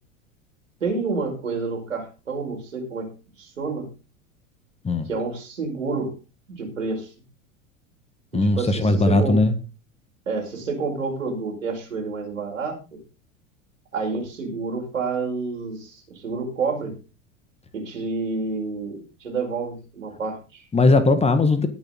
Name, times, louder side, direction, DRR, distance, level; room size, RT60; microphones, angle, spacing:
voice 1, 0.8-3.1 3.4-3.9 5.0-6.1 6.5-7.1 8.3-9.4 10.3-13.0 13.9-16.9 17.7-20.6, right 4 dB, 75° right, 2 dB, 4.9 m, -29 dB
voice 2, 8.3-9.5 20.7-21.7, left 2 dB, 15° left, 11 dB, 1.6 m, -18 dB
19.0 x 7.0 x 3.8 m, 0.31 s
figure-of-eight pair, 80°, 39 cm